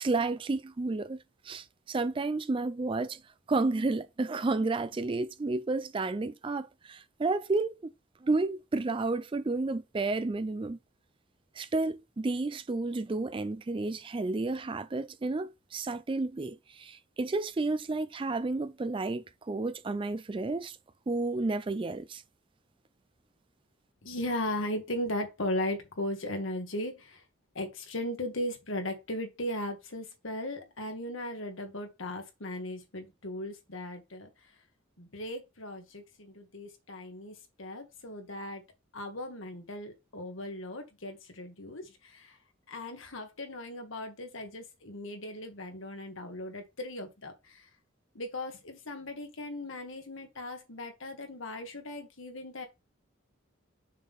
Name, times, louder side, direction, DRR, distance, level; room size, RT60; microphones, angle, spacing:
voice 1, 0.0-3.2 3.5-7.9 8.2-10.8 11.6-20.8 21.1-22.2, right 3 dB, 25° right, 0.4 m, -31 dB
voice 2, 24.0-27.2 27.6-34.3 35.0-38.6 38.9-42.4 42.7-47.7 48.2-52.7, left 1 dB, 85° left, 1.7 m, -37 dB
6.5 x 3.7 x 5.6 m
head